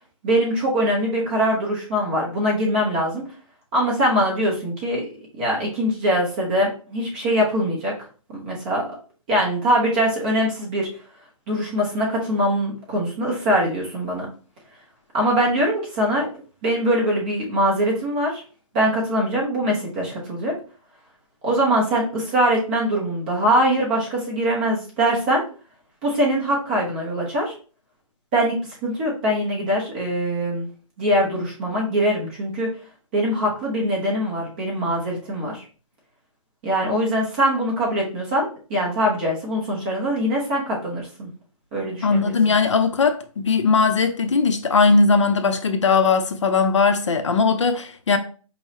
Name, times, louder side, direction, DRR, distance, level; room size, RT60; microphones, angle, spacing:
voice 1, 0.2-3.3 3.7-5.1 5.3-7.9 8.3-8.9 9.3-10.9 11.5-14.3 15.1-16.3 16.6-18.4 18.7-20.5 21.4-25.4 26.0-27.5 28.3-28.6 28.8-30.7 31.0-32.7 33.1-35.6 36.6-41.3 41.7-42.3, equal, 15° right, 0.8 m, -22 dB
voice 2, 42.0-48.2, left 4 dB, 60° left, 0.6 m, -19 dB
4.6 x 3.0 x 2.8 m
hypercardioid pair, 170°, 18 cm